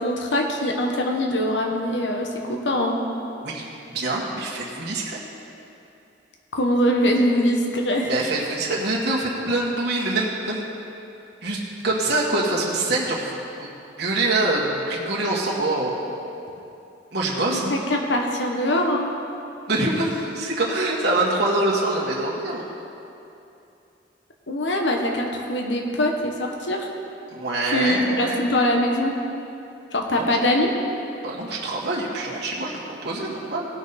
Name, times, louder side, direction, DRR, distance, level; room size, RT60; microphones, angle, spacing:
voice 1, 0.0-3.0 6.5-8.1 17.5-19.1 24.5-26.9 27.7-29.1 29.9-30.7, left 1 dB, 80° left, 1 dB, 1.2 m, -23 dB
voice 2, 3.9-5.2 8.0-10.6 11.4-11.6 11.8-15.9 17.1-17.7 19.7-22.7 27.3-28.5 30.1-30.4 31.2-33.7, right 2 dB, 65° right, -5 dB, 1.8 m, -25 dB
18.5 x 6.3 x 4.1 m, 2.8 s
head